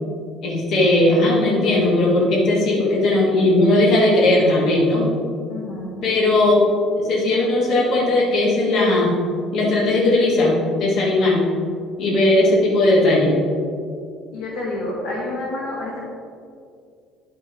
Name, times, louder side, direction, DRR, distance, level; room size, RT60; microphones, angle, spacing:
voice 1, 0.4-5.1 6.0-6.7 7.0-9.1 9.5-11.4 12.0-13.3, left 2 dB, 45° left, -4 dB, 1.9 m, -17 dB
voice 2, 5.5-6.1 14.3-16.0, left 2 dB, 65° left, -4 dB, 1.7 m, -29 dB
10.5 x 6.3 x 3.7 m, 2.3 s
cardioid pair, 180°, 0 cm